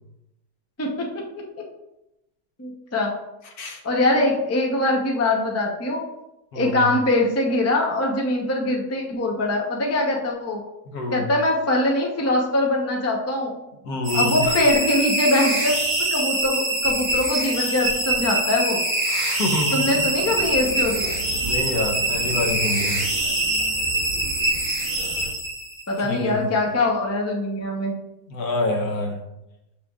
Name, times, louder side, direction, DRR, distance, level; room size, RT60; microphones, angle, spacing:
voice 1, 2.6-3.1 3.8-6.0 6.5-10.6 11.1-13.5 14.1-15.7 16.1-18.8 19.7-21.1 25.9-27.9, left 1 dB, 15° left, 0 dB, 0.5 m, -22 dB
voice 2, 6.5-6.9 10.9-11.3 13.8-14.6 19.1-20.1 21.4-23.0 26.0-26.5 28.3-29.2, left 2 dB, 70° left, 2 dB, 1.4 m, -27 dB
sound 1, 14.0-25.9, right 1 dB, 25° right, 2.3 m, -24 dB
sound 2, 19.9-25.3, right 3 dB, 60° right, 1.2 m, -37 dB
6.8 x 5.7 x 2.4 m, 0.92 s
omnidirectional pair, 1.7 m